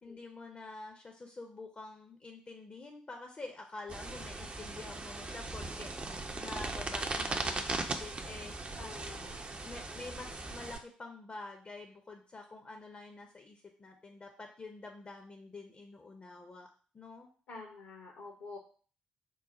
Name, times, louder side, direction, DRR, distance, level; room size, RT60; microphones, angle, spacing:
voice 1, 0.0-5.9 6.1-8.5 9.6-16.7 16.9-17.3, left 3 dB, 30° left, 3 dB, 0.6 m, -47 dB
sound 1, 3.9-10.8, right 2 dB, 25° right, 0.5 m, -38 dB
voice 2, 8.8-9.4 17.5-18.6, left 3 dB, 65° left, 0 dB, 0.8 m, -47 dB
3.8 x 2.0 x 4.1 m, 0.41 s
figure-of-eight pair, 40°, 4 cm